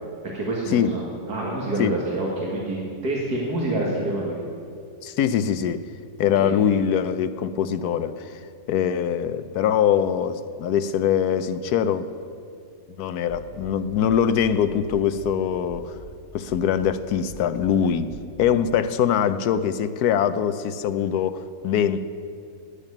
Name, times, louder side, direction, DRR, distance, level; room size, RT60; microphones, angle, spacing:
voice 1, 0.2-4.4 6.4-6.5, right 2 dB, 75° right, -4 dB, 2.3 m, -27 dB
voice 2, 5.0-5.9 6.2-8.4 8.7-12.1 13.0-16.0 16.3-18.1 18.4-22.0, left 8 dB, 75° left, 12 dB, 1.2 m, -23 dB
sound 1, 13.3-13.7 14.1-14.5 14.9-15.3 15.7-16.1 16.5-16.9 17.3-17.7 18.1-18.5, equal, 35° left, 2.3 m, -43 dB
11.5 x 9.0 x 9.9 m, 2.4 s
omnidirectional pair, 1.7 m